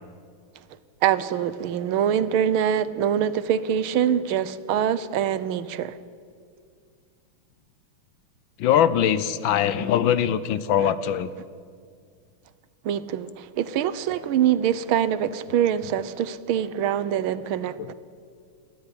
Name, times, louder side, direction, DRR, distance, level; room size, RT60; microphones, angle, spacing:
voice 1, 1.0-6.0 10.8-10.9 12.8-17.9, right 9 dB, 75° right, 1.6 m, -24 dB
voice 2, 8.6-11.3, left 9 dB, 70° left, 1.4 m, -22 dB
19.0 x 13.5 x 9.9 m
omnidirectional pair, 2.3 m